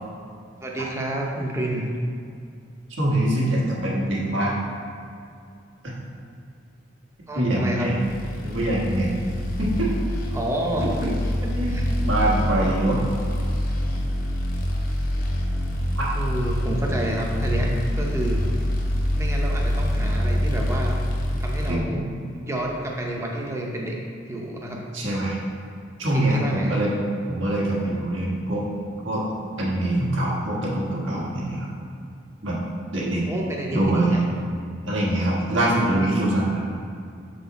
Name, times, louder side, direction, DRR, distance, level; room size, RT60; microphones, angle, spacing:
voice 1, 0.6-1.9 7.3-7.9 10.3-11.1 11.6-11.8 16.1-18.4 19.1-20.9 21.4-22.0 22.3-24.0 24.3-24.8 26.1-26.8 33.3-34.2, right 1 dB, 15° right, -1 dB, 0.6 m, -29 dB
voice 2, 3.0-4.6 7.4-8.0 8.4-9.1 9.6-10.1 10.8-11.1 11.5-11.7 12.0-13.0 16.0-16.1 21.7-22.1 24.9-25.4 26.0-26.9 27.3-28.6 29.0-29.2 29.6-31.7 32.4-32.6 32.9-33.2 33.7-34.2 34.8-36.6, right 1 dB, 85° right, -4 dB, 1.4 m, -24 dB
sound 1, 8.0-21.7, equal, 45° left, 0.7 m, -25 dB
6.5 x 4.0 x 4.0 m, 2.4 s
head